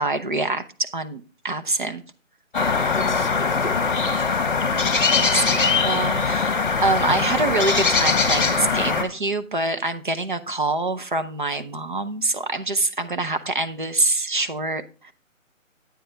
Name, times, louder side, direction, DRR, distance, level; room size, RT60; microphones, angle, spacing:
voice 1, 0.0-2.0 5.1-15.1, right 2 dB, 35° right, 9 dB, 0.7 m, -25 dB
sound 1, 2.5-9.0, left 5 dB, 35° left, 1.3 m, -21 dB
voice 2, 2.6-4.3, left 3 dB, 5° left, -13 dB, 1.1 m, -37 dB
9.1 x 8.7 x 3.3 m, 0.35 s
figure-of-eight pair, 170°, 41 cm